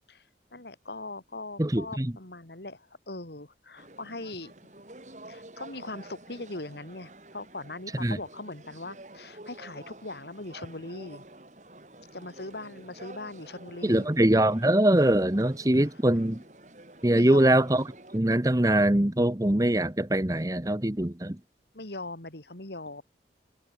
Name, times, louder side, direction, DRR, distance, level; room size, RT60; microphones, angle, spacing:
voice 1, 0.5-4.5 5.3-11.2 12.1-14.1 15.8-15.9 17.1-17.5 21.7-23.0, left 2 dB, 65° left, 2.7 m, -40 dB
voice 2, 1.6-2.1 8.0-8.2 13.8-16.4 17.0-17.8 18.1-21.4, right 1 dB, 20° right, 1.0 m, -23 dB
sound 1, 3.8-18.2, right 1 dB, 40° right, 3.6 m, -50 dB
head